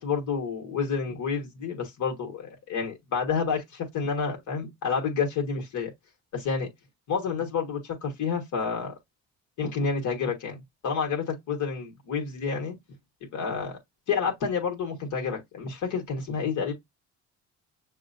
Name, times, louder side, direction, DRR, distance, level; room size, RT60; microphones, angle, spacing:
voice 1, 0.0-5.9 6.3-6.7 7.1-8.9 9.6-12.8 13.3-13.8 14.1-16.7, left 5 dB, 70° left, 1.5 m, -29 dB
6.4 x 2.2 x 2.6 m
supercardioid pair, 75°, 32 cm